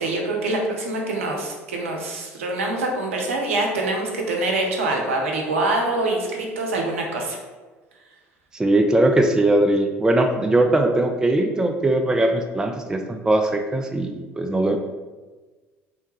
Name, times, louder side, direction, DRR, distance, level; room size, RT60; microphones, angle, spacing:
voice 1, 0.0-7.4, right 2 dB, 75° right, 0 dB, 0.6 m, -25 dB
voice 2, 8.5-14.8, right 1 dB, 10° right, 5 dB, 0.3 m, -20 dB
3.3 x 2.7 x 3.1 m, 1.3 s
figure-of-eight pair, 60°, 7 cm